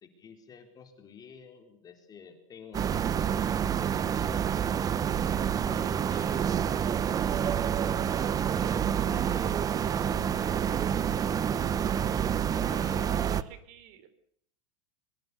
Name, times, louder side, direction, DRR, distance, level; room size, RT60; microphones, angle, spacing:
voice 1, 0.0-4.6 5.6-8.3 8.9-11.1 11.4-12.1 12.6-13.4, left 6 dB, 25° left, 5 dB, 4.1 m, -50 dB
sound 1, 2.7-13.4, right 8 dB, 20° right, 1.0 m, -28 dB
voice 2, 12.6-14.1, right 9 dB, 50° right, 13 dB, 4.2 m, -47 dB
23.5 x 21.5 x 6.9 m, 0.67 s
supercardioid pair, 140°, 16 cm